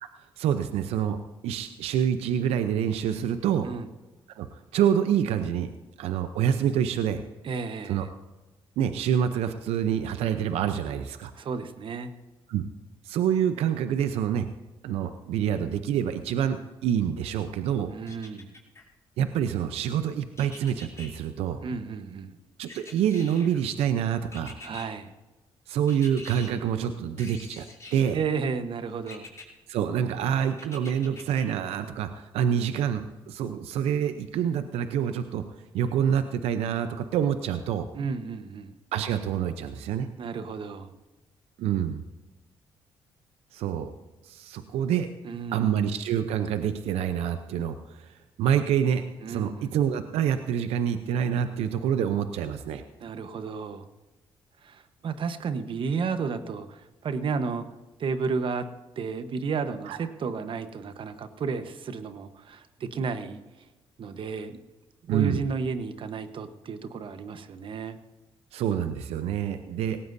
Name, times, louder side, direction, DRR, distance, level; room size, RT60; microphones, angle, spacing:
voice 1, 0.4-1.2 1.4-3.7 4.4-5.7 6.0-7.2 7.8-8.1 8.8-11.3 12.5-12.6 13.0-14.5 14.8-17.9 19.2-21.6 22.6-24.6 25.7-27.6 27.9-28.2 29.7-35.4 35.7-37.9 38.9-40.1 41.6-42.0 43.5-43.9 44.2-45.1 45.5-52.8 59.9-60.0 65.1-65.4 68.5-70.0, right 9 dB, 80° right, 9 dB, 0.7 m, -27 dB
voice 2, 7.4-8.1 11.3-12.1 17.9-18.5 21.6-22.4 24.6-25.1 28.1-29.3 37.9-38.7 40.2-40.9 45.2-45.7 49.2-49.8 53.0-53.9 54.6-57.6 58.0-58.7 59.0-63.6 64.0-64.6 65.0-68.0, right 5 dB, 55° right, 10 dB, 1.1 m, -32 dB
sound 1, 18.1-18.8 20.4-21.1 22.7-23.6 24.3-24.9 25.9-26.5 27.2-28.1 29.1-29.5 30.6-31.4 31.9-32.0, left 2 dB, 25° left, 5.6 m, -45 dB
18.0 x 17.5 x 2.7 m, 1.1 s
supercardioid pair, 70°, 10 cm